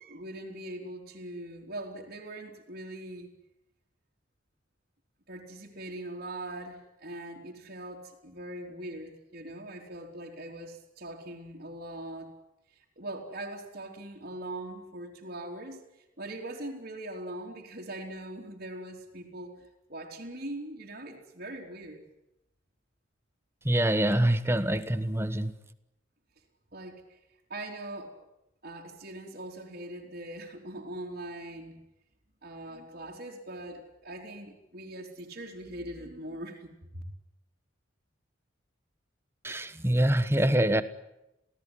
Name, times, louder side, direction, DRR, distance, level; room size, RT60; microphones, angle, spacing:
voice 1, 0.0-3.3 5.3-12.3 12.7-15.8 16.2-22.1 26.7-27.2 27.5-28.2 28.6-31.8 32.4-37.0, right 1 dB, 50° right, -6 dB, 3.6 m, -41 dB
voice 2, 23.6-25.5 39.4-40.8, right 1 dB, 10° right, 11 dB, 1.1 m, -25 dB
28.5 x 17.5 x 9.9 m, 0.89 s
head